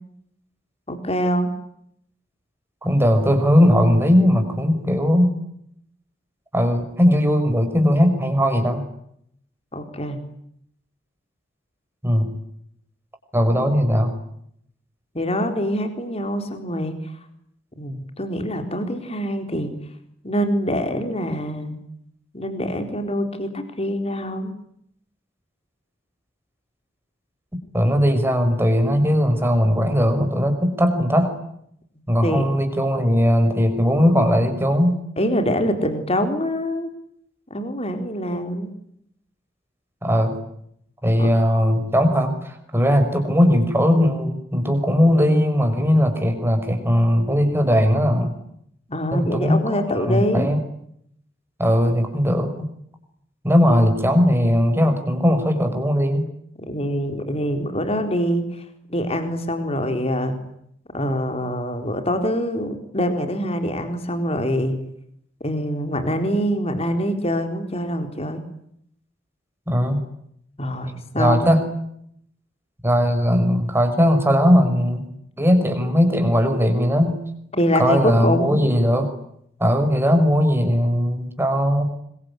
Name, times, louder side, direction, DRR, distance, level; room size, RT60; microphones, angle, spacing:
voice 1, 0.9-1.5 9.7-10.2 15.1-17.0 17.8-19.8 20.2-21.8 22.3-24.5 32.2-32.5 35.2-36.9 37.5-38.7 41.2-41.3 48.9-50.5 56.6-58.5 58.9-60.4 60.9-64.8 65.4-68.4 70.6-71.5 77.5-78.6, equal, 35° left, 6 dB, 4.2 m, -24 dB
voice 2, 2.8-5.4 6.5-8.8 12.0-12.3 13.3-14.1 27.7-31.3 32.1-35.0 40.0-40.4 41.0-48.3 49.1-50.6 51.6-52.7 53.4-56.3 69.7-70.0 71.2-71.7 72.8-75.1 75.4-77.2 77.8-79.1 79.6-81.9, equal, 15° right, 6 dB, 5.8 m, -19 dB
26.0 x 23.0 x 9.9 m, 0.73 s
head